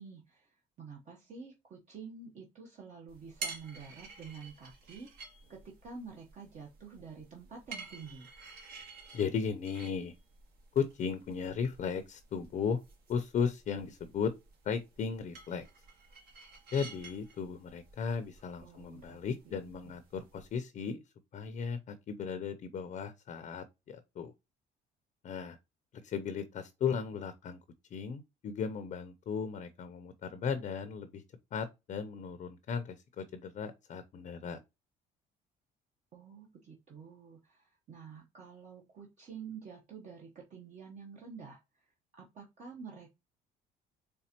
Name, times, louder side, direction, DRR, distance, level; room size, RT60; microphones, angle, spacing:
voice 1, 0.0-8.3 18.6-19.8 36.1-41.8 42.2-43.1, right 5 dB, 45° right, 1.0 m, -49 dB
sound 1, 3.1-20.6, right 4 dB, 65° right, 1.7 m, -50 dB
voice 2, 9.1-10.1 10.7-12.8 13.1-14.3 14.6-15.7 16.7-21.0 21.3-24.3 25.2-25.6 26.0-27.6 27.9-31.2 31.5-34.6, left 6 dB, 45° left, 0.6 m, -36 dB
4.3 x 3.4 x 2.9 m
cardioid pair, 110°, 17 cm